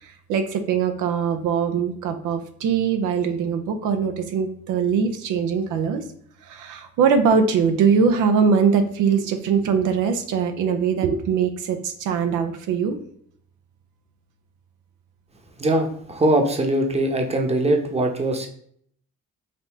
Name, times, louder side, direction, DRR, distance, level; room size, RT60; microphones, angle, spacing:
voice 1, 0.0-6.0 6.4-13.0, right 6 dB, 85° right, 6 dB, 0.6 m, -22 dB
voice 2, 15.6-18.5, right 1 dB, 20° right, 4 dB, 0.8 m, -21 dB
5.1 x 2.7 x 3.4 m, 0.64 s
cardioid pair, 90°, 30 cm